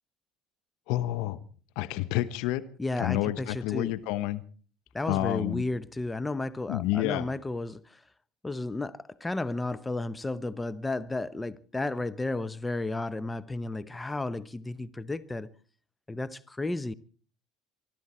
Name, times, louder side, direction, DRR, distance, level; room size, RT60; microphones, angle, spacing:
voice 1, 0.9-1.4 1.8-2.6 3.0-4.4 5.1-5.6 6.7-7.3, left 15 dB, 70° left, 1.0 m, -29 dB
voice 2, 2.8-3.9 4.9-8.0 8.4-15.5 16.1-16.9, left 2 dB, 15° left, 0.9 m, -33 dB
24.5 x 12.5 x 4.4 m
hypercardioid pair, 70°, 0 cm